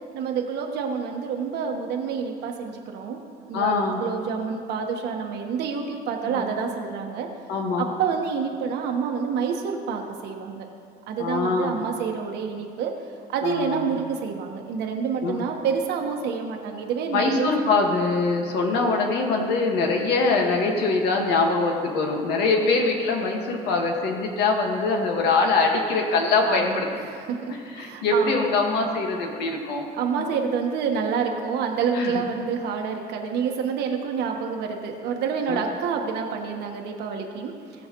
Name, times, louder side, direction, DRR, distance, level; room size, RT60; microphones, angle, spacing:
voice 1, 0.1-3.2 3.4-7.3 7.8-10.7 11.1-12.9 13.3-17.5 22.6-22.7 26.5-26.8 27.1-28.5 29.9-37.5, right 6 dB, 80° right, 2 dB, 1.3 m, -28 dB
voice 2, 3.5-4.0 6.2-6.4 7.5-7.9 11.2-11.8 13.4-14.0 15.2-15.5 17.1-26.9 27.5-29.9 30.2-30.3 31.9-32.2 35.5-35.6, left 3 dB, 80° left, 1 dB, 1.7 m, -23 dB
18.5 x 6.5 x 3.0 m, 2.3 s
cardioid pair, 110°, 17 cm